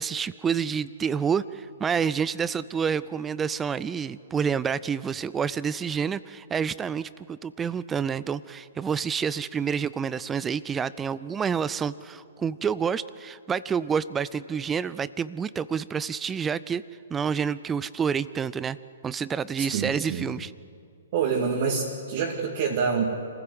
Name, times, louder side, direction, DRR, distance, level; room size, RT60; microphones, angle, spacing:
voice 1, 0.0-16.8 17.1-18.8 19.0-20.5, right 6 dB, 15° right, 18 dB, 0.5 m, -28 dB
voice 2, 19.7-20.3 21.1-23.1, right 5 dB, 45° right, -2 dB, 2.3 m, -26 dB
26.5 x 15.0 x 8.0 m, 2.5 s
figure-of-eight pair, 125°, 0 cm